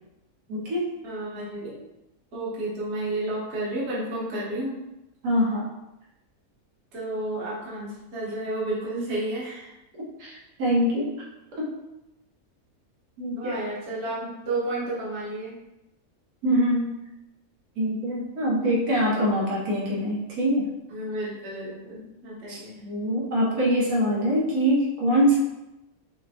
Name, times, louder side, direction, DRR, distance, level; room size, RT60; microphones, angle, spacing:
voice 1, 0.5-0.9 5.2-5.6 10.2-11.1 11.6-11.7 13.2-13.5 16.4-17.0 17.8-20.7 22.5-25.4, equal, 80° right, -5 dB, 1.5 m, -24 dB
voice 2, 1.0-1.8 2.3-4.8 6.9-9.8 13.4-15.6 20.9-22.8, right 2 dB, 50° right, -6 dB, 1.2 m, -31 dB
5.6 x 2.1 x 2.8 m, 0.94 s
omnidirectional pair, 1.6 m